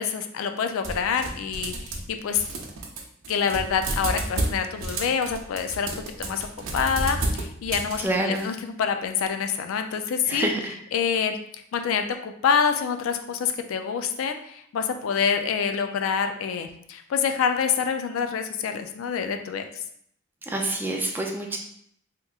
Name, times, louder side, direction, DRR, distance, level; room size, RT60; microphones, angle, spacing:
voice 1, 0.0-2.4 3.3-5.9 6.2-6.5 6.7-10.5 10.9-11.4 11.7-19.6, left 6 dB, 85° left, 7 dB, 0.3 m, -26 dB
sound 1, 0.8-2.1 2.4-8.4, right 2 dB, 75° right, 0.6 m, -31 dB
voice 2, 8.0-8.5 10.3-10.7 20.4-21.6, right 1 dB, 10° right, 1 dB, 0.4 m, -27 dB
3.5 x 2.9 x 2.3 m, 0.68 s
head